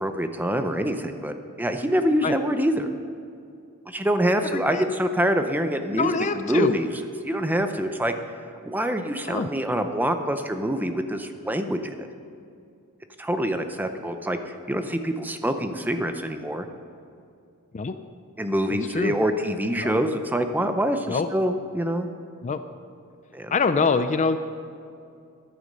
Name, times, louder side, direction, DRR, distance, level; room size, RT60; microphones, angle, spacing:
voice 1, 0.0-2.9 3.9-6.9 7.2-8.1 8.6-12.1 13.2-14.4 14.7-16.7 18.4-22.1 23.3-23.5, equal, 10° right, 7 dB, 0.6 m, -25 dB
voice 2, 4.5-4.9 5.9-6.7 9.3-9.5 17.7-17.9 18.9-19.1 19.8-19.9 21.1-21.3 22.4-22.6 23.5-24.4, left 4 dB, 35° left, 10 dB, 0.4 m, -24 dB
11.0 x 9.2 x 6.6 m, 2.5 s
head